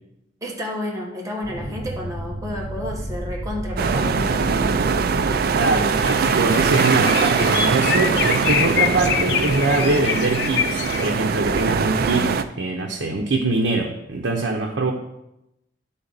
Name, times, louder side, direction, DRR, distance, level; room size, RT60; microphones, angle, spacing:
voice 1, 0.4-4.5, left 1 dB, 20° right, -3 dB, 1.2 m, -31 dB
sound 1, 1.4-7.2, right 1 dB, 40° left, 2.3 m, -32 dB
sound 2, 3.8-12.4, right 5 dB, 55° right, 0.4 m, -22 dB
voice 2, 5.6-14.9, right 3 dB, 80° right, 1 dB, 0.8 m, -23 dB
sound 3, 6.0-11.1, left 8 dB, 65° left, 0.5 m, -26 dB
11.0 x 3.7 x 4.0 m, 0.86 s
head